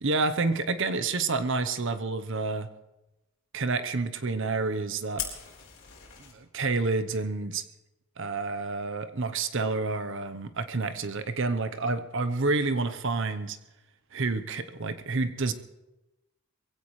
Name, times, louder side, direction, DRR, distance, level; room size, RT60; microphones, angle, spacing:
voice 1, 0.0-2.7 3.5-5.2 6.3-7.6 8.2-13.6 14.1-15.5, right 3 dB, 60° right, 10 dB, 0.9 m, -29 dB
Fire, 5.2-6.3, left 9 dB, 60° left, 4.5 m, -38 dB
22.5 x 16.0 x 3.2 m, 0.99 s
head